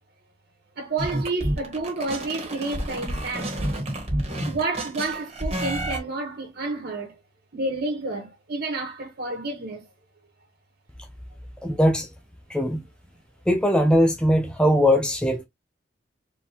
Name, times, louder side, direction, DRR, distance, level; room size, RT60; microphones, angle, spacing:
voice 1, 0.8-3.6 4.4-7.1 7.5-9.8, right 3 dB, 55° right, 1.5 m, -30 dB
sound 1, 1.0-6.0, right 1 dB, 35° right, 1.8 m, -29 dB
voice 2, 11.6-12.1 12.5-12.8 13.5-15.4, equal, 5° left, 0.6 m, -20 dB
4.2 x 3.8 x 2.9 m
head